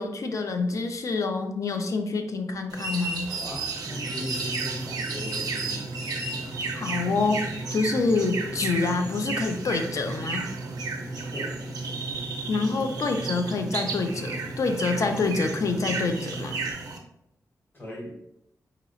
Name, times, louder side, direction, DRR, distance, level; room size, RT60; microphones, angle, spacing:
voice 1, 0.0-3.3 6.7-10.4 12.5-16.6, left 3 dB, 55° left, 5 dB, 0.4 m, -27 dB
sound 1, 2.7-17.0, right 4 dB, 85° right, 0.6 m, -34 dB
voice 2, 3.2-5.8 11.3-11.5 17.7-18.2, left 1 dB, 35° left, -4 dB, 1.1 m, -38 dB
sound 2, 3.9-16.7, right 2 dB, 20° right, 0.4 m, -37 dB
4.1 x 2.9 x 2.5 m, 0.79 s
wide cardioid pair, 120°, 6 cm